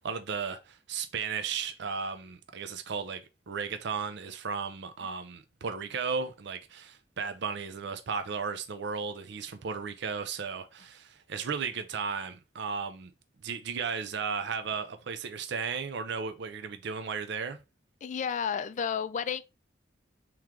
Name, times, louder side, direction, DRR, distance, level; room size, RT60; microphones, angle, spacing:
voice 1, 0.0-13.1 13.4-17.6, right 5 dB, 65° right, 0.5 m, -35 dB
voice 2, 18.0-19.4, left 7 dB, 40° left, 0.3 m, -31 dB
3.7 x 3.1 x 4.5 m
head